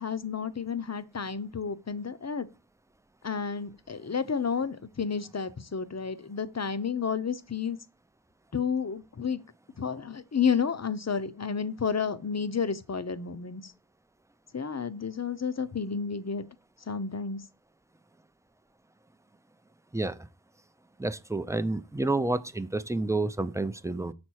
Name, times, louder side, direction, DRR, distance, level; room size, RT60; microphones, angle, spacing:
voice 1, 0.0-2.5 3.2-7.8 8.5-9.4 9.8-13.7 14.5-16.4 16.9-17.4, left 6 dB, 40° left, 0.7 m, -31 dB
voice 2, 21.0-24.1, right 2 dB, 5° right, 0.4 m, -29 dB
6.4 x 4.4 x 6.2 m
wide cardioid pair, 40°, 42 cm